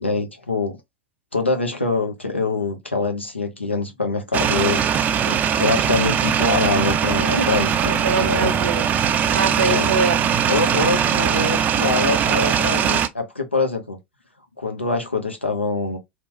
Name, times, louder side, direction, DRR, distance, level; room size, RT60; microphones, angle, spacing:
voice 1, 0.0-0.8 1.3-8.5 9.7-9.9 10.5-14.0 14.6-16.0, left 3 dB, 85° left, 0.6 m, -24 dB
sound 1, 4.3-13.1, right 8 dB, 25° right, 0.3 m, -20 dB
voice 2, 8.0-8.9 9.3-10.3, right 4 dB, 80° right, 0.7 m, -23 dB
2.9 x 2.1 x 2.8 m
figure-of-eight pair, 85°, 6 cm